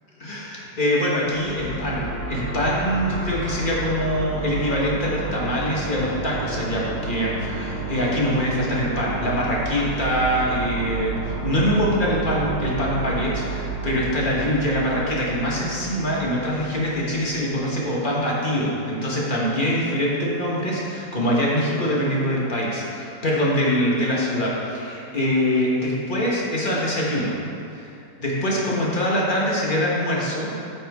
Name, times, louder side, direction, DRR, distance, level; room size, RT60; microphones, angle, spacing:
voice 1, 0.2-27.4 27.7-27.9 28.2-30.5, equal, 30° left, -5 dB, 1.3 m, -24 dB
sound 1, 1.2-17.4, right 4 dB, 35° right, 1.8 m, -31 dB
8.4 x 7.2 x 3.6 m, 2.6 s
omnidirectional pair, 1.9 m